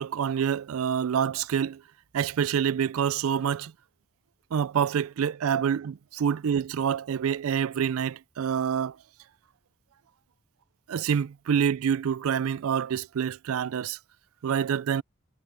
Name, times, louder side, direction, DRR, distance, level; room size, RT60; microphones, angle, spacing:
voice 1, 0.0-1.8 2.1-3.7 4.5-9.0 10.9-14.0 14.4-15.0, right 8 dB, 75° right, 0.4 m, -27 dB
head